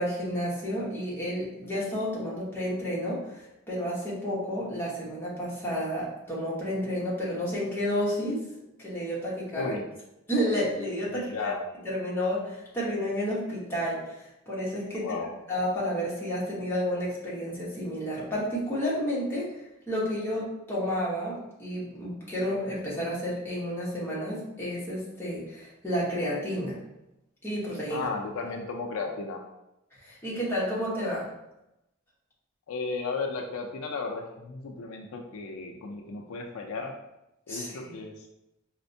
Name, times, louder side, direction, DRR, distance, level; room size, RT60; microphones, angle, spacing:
voice 1, 0.0-8.4 8.8-9.7 10.3-11.5 11.8-15.1 15.5-19.6 19.9-26.8 27.4-28.1 29.9-31.3 37.5-37.7, equal, 10° left, -7 dB, 0.9 m, -31 dB
voice 2, 9.5-9.8 11.1-11.6 14.9-15.3 27.9-29.4 32.7-36.9 37.5-38.3, left 4 dB, 75° left, 2 dB, 0.4 m, -34 dB
4.1 x 2.1 x 2.6 m, 0.90 s
head